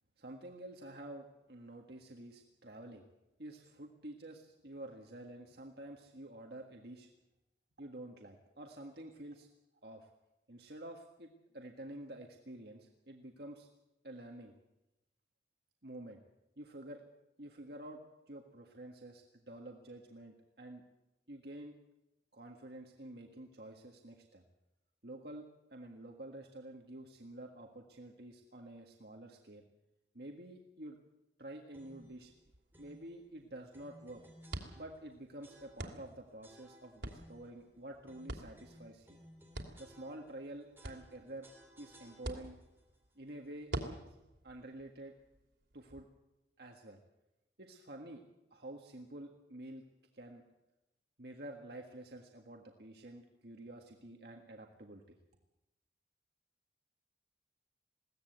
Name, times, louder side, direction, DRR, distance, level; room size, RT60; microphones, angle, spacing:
voice 1, 0.2-3.0 3.4-7.1 7.8-9.5 9.8-10.1 10.5-13.7 14.0-14.5 15.8-16.2 16.6-17.0 17.4-18.0 18.3-20.8 21.3-21.8 22.3-24.4 25.0-29.6 30.1-31.0 31.4-32.3 32.8-34.2 34.7-39.2 39.8-41.5 41.8-42.6 43.1-43.7 44.1-44.2 44.4-45.1 45.7-46.1 46.6-47.0 47.6-48.2 48.5-49.8 50.1-50.4 51.2-55.2, right 1 dB, 60° right, 2 dB, 1.7 m, -49 dB
sound 1, 31.7-32.2 32.7-33.1 33.7-35.1 35.4-36.0 36.4-37.5 38.0-40.4 40.7-42.6, equal, 10° right, 3.2 m, -59 dB
sound 2, 31.9-46.0, right 1 dB, 90° right, 2.9 m, -48 dB
21.5 x 16.5 x 8.0 m, 0.94 s
head